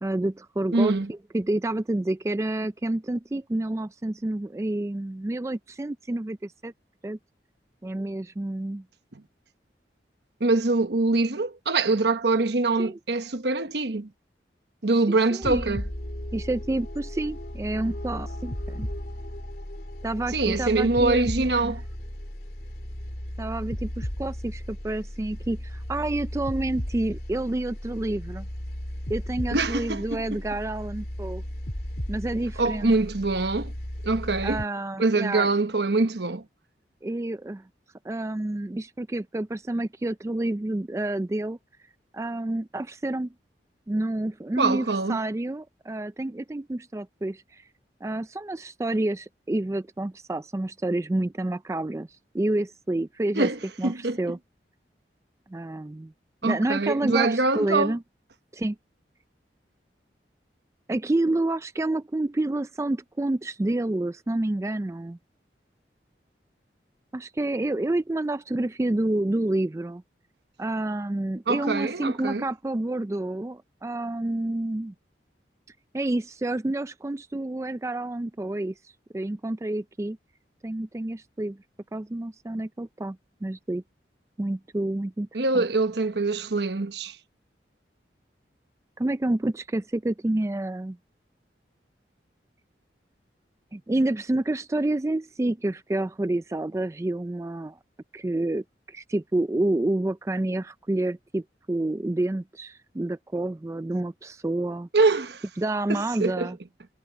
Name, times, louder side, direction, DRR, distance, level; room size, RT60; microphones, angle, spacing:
voice 1, 0.0-6.7 7.0-7.2 7.8-8.8 12.8-13.0 15.1-15.8 16.3-18.9 20.0-21.7 23.4-28.5 29.1-31.4 32.1-32.9 34.4-35.5 37.0-37.6 38.0-41.6 42.1-43.3 43.9-47.7 48.0-52.1 52.3-53.5 53.8-54.4 55.5-56.1 56.4-58.0 58.5-58.8 60.9-65.2 67.1-70.0 70.6-74.9 75.9-78.7 79.1-80.2 80.6-81.6 81.9-83.8 84.4-85.3 85.5-85.7 89.0-91.0 93.7-97.8 98.1-104.9 105.6-106.6, right 1 dB, 15° right, 0.3 m, -29 dB
voice 2, 0.7-1.1 10.4-14.1 14.8-15.8 20.3-21.8 29.5-30.0 32.6-33.7 34.0-34.6 35.0-36.4 44.6-45.2 53.4-54.2 56.4-57.9 71.5-72.4 85.3-87.2 104.9-105.4 105.9-106.5, right 3 dB, 75° right, 1.1 m, -24 dB
sound 1, 15.4-34.6, equal, 55° left, 2.6 m, -35 dB
head